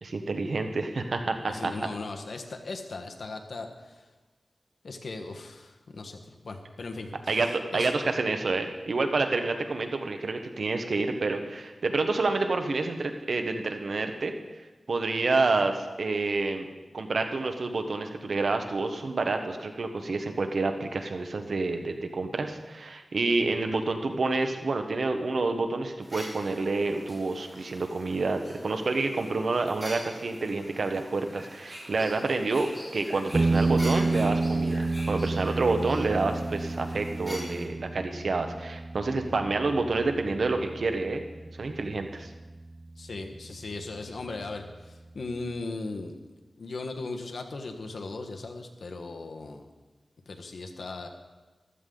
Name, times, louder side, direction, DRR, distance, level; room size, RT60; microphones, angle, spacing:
voice 1, 0.0-1.7 7.3-14.3 14.9-16.7 16.9-41.2 41.6-42.3, right 3 dB, 70° right, 6 dB, 1.2 m, -28 dB
voice 2, 1.5-4.1 4.8-7.4 7.7-7.9 23.6-23.8 39.2-39.4 43.0-46.2 46.6-49.7 50.3-51.1, left 3 dB, 75° left, 4 dB, 1.3 m, -38 dB
sound 1, 26.0-37.6, equal, 5° right, 5.5 m, -45 dB
sound 2, 33.3-42.4, right 3 dB, 35° right, 0.3 m, -30 dB
15.0 x 12.5 x 3.9 m, 1.2 s
wide cardioid pair, 85°, 0 cm